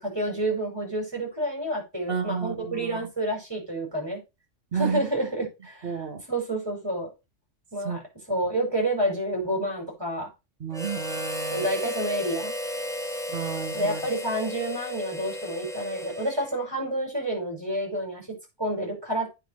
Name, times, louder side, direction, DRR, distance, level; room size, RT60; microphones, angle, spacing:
voice 1, 0.0-4.2 4.7-5.9 6.3-7.1 7.7-8.0 8.3-10.3 11.5-12.5 13.7-18.3 18.6-19.3, right 1 dB, 20° right, 5.6 m, -29 dB
voice 2, 2.1-3.1 4.7-5.0 5.8-6.2 7.8-8.0 10.6-11.7 13.3-14.1, right 6 dB, 55° right, 1.4 m, -31 dB
Harmonica, 10.7-16.7, equal, 5° left, 1.7 m, -34 dB
9.0 x 4.8 x 6.6 m
omnidirectional pair, 1.2 m